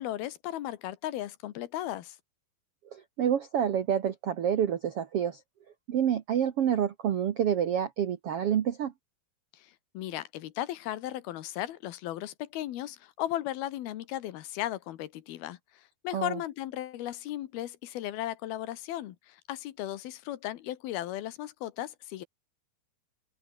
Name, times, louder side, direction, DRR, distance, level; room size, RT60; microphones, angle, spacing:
voice 1, 0.0-2.2 9.5-22.3, left 13 dB, 80° left, 3.2 m, -36 dB
voice 2, 2.9-5.4 5.9-8.9 16.1-16.4, right 9 dB, 70° right, 1.4 m, -28 dB
open air
omnidirectional pair, 4.4 m